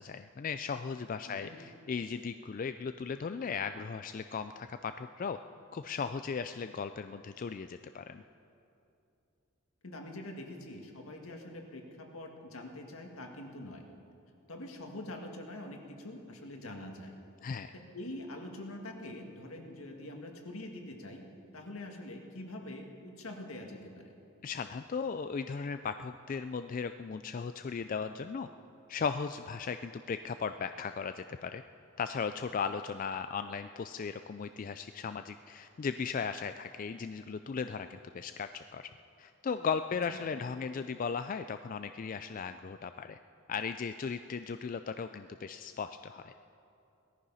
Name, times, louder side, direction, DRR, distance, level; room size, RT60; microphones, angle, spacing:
voice 1, 0.0-5.4 5.7-8.2 17.4-17.7 24.4-28.5 28.9-31.6 32.0-38.9 39.2-43.2 43.5-46.3, left 5 dB, 40° left, 9 dB, 0.3 m, -37 dB
voice 2, 9.8-13.8 14.5-17.1 17.7-21.3 21.5-24.1 40.1-40.2, left 1 dB, 80° left, 2 dB, 1.9 m, -44 dB
18.5 x 13.5 x 5.6 m, 2.7 s
head